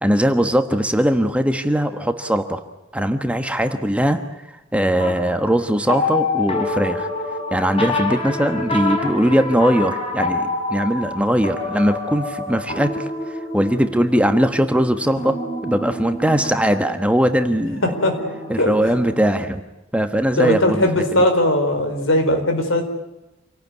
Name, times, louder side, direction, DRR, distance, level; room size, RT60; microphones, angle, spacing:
voice 1, 0.0-2.6 2.9-4.2 4.7-7.1 7.5-17.8 18.5-19.6 19.9-21.0, equal, 5° right, 7 dB, 1.2 m, -20 dB
sound 1, 5.0-19.2, left 2 dB, 30° left, 6.2 m, -27 dB
voice 2, 17.8-18.2 18.6-18.7 20.4-22.9, left 1 dB, 75° left, 6 dB, 4.5 m, -19 dB
27.5 x 18.0 x 9.6 m, 0.97 s
head